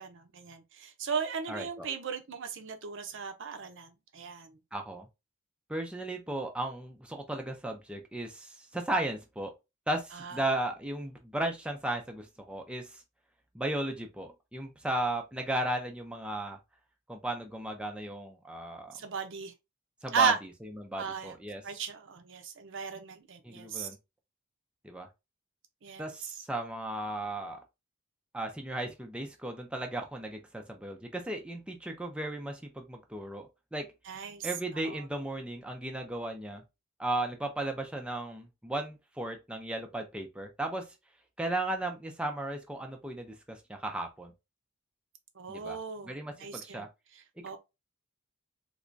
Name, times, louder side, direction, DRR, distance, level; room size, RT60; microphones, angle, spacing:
voice 1, 0.0-4.6 10.1-10.4 18.9-19.5 20.1-20.4 21.0-21.4 21.6-23.9 25.8-26.1 34.1-34.5 34.7-35.0 45.4-46.9 47.4-47.6, right 6 dB, 60° right, 0.6 m, -35 dB
voice 2, 1.5-1.9 4.7-5.1 5.7-9.5 9.9-13.0 13.5-16.6 17.1-19.0 20.0-20.3 20.8-21.6 23.4-24.0 24.8-25.1 26.0-27.6 28.3-33.9 34.4-36.6 37.0-40.8 41.4-44.3 45.5-45.8 46.0-46.9, right 1 dB, 5° right, 0.4 m, -35 dB
3.3 x 2.9 x 2.5 m
head